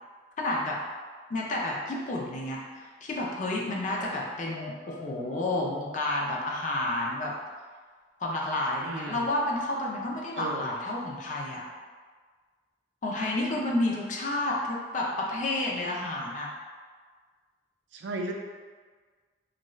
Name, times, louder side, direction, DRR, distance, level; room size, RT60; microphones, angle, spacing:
voice 1, 0.4-0.8 1.3-7.3 8.2-11.6 13.0-16.5, left 2 dB, 45° left, -2 dB, 0.5 m, -30 dB
sound 1, 3.9-4.1 4.4-7.2, left 2 dB, 60° left, 1.1 m, -48 dB
voice 2, 8.8-9.2 10.4-10.6 17.9-18.3, right 2 dB, 85° right, 2 dB, 0.4 m, -35 dB
2.5 x 2.3 x 3.0 m, 1.5 s
head